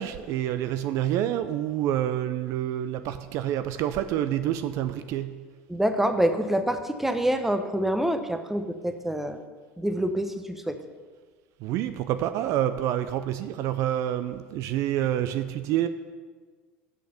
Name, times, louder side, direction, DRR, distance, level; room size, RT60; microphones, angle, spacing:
voice 1, 0.0-5.6 11.6-15.9, right 11 dB, 55° right, 11 dB, 0.4 m, -28 dB
voice 2, 5.7-9.4 9.8-10.8, right 1 dB, 5° right, 8 dB, 0.8 m, -26 dB
6.7 x 6.4 x 6.9 m, 1.5 s
hypercardioid pair, 80°, 6 cm